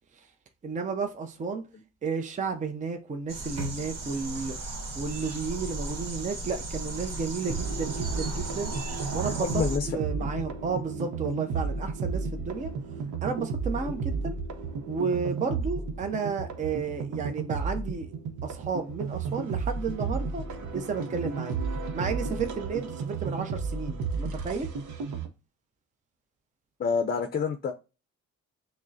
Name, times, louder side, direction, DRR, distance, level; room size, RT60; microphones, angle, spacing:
voice 1, 0.6-1.6 2.0-4.6 5.0-8.7 9.1-12.7 13.2-14.4 14.9-18.1 18.4-20.5 20.7-21.6 21.9-24.7, right 5 dB, 25° right, 0.5 m, -32 dB
sound 1, 3.3-9.8, right 2 dB, 55° right, 1.2 m, -36 dB
sound 2, 7.4-25.3, right 4 dB, 75° right, 0.8 m, -33 dB
voice 2, 9.2-10.3 26.8-27.7, left 6 dB, 35° left, 0.5 m, -28 dB
5.9 x 2.1 x 2.6 m
cardioid pair, 90°, 30 cm